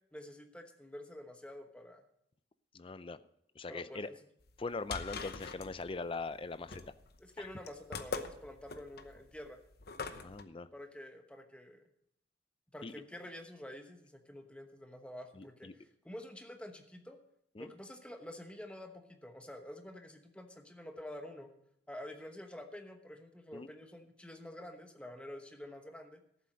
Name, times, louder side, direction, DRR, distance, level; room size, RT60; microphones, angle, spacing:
voice 1, 0.1-2.0 3.7-4.2 6.7-6.8 7.2-9.6 10.7-11.9 12.7-17.2 17.6-21.5 21.9-26.2, left 1 dB, 5° left, 5 dB, 1.1 m, -48 dB
voice 2, 2.7-3.2 3.6-4.1 4.6-6.8 7.4-7.5 10.2-10.7 12.8-12.9 15.4-15.7 17.6-17.7 23.5-23.7, left 3 dB, 30° left, 14 dB, 0.5 m, -41 dB
sound 1, 4.5-10.4, left 4 dB, 55° left, 0.9 m, -43 dB
13.5 x 7.7 x 6.3 m, 0.74 s
head